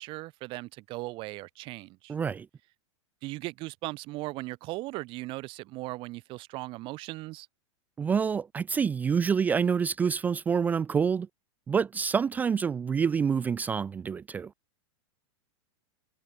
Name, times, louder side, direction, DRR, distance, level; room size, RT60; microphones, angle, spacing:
voice 1, 0.0-2.1 3.2-7.5, right 21 dB, 35° right, 6.1 m, -38 dB
voice 2, 2.1-2.5 8.0-11.3 11.7-14.5, right 6 dB, 10° right, 0.5 m, -27 dB
supercardioid pair, 160°, 15 cm